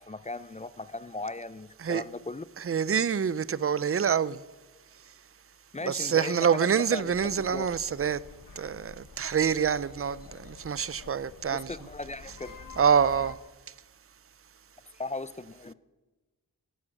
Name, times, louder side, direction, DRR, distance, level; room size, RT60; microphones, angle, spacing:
voice 1, 0.0-2.4 5.7-7.8 11.5-12.6 14.9-15.7, left 2 dB, 20° left, 0.5 m, -38 dB
voice 2, 2.6-4.4 5.8-8.2 8.6-11.7 12.8-13.3, right 7 dB, 40° right, 0.4 m, -26 dB
sound 1, 7.0-13.4, left 4 dB, 60° left, 1.0 m, -49 dB
15.0 x 10.5 x 6.4 m
wide cardioid pair, 60°, 37 cm